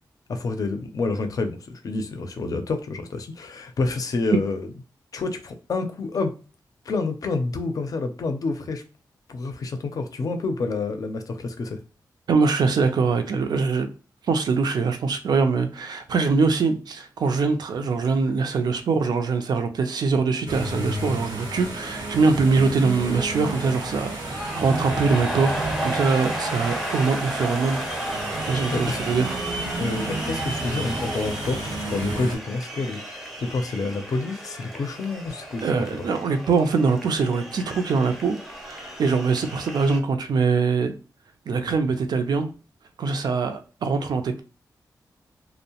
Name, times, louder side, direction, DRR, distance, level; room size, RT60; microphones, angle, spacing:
voice 1, 0.3-4.7 5.1-6.3 6.9-8.8 9.3-11.8 28.5-29.0 29.8-35.7 36.0-36.1, left 3 dB, 55° left, 0.5 m, -28 dB
voice 2, 12.3-13.9 14.3-27.8 28.5-29.4 35.6-38.4 38.6-41.0 41.5-42.5 43.0-44.4, right 4 dB, 70° right, 0.4 m, -23 dB
sound 1, 20.5-32.4, right 1 dB, 90° right, 0.9 m, -32 dB
sound 2, 22.6-40.0, right 1 dB, ahead, 0.5 m, -34 dB
2.6 x 2.0 x 2.8 m
wide cardioid pair, 125°, 7 cm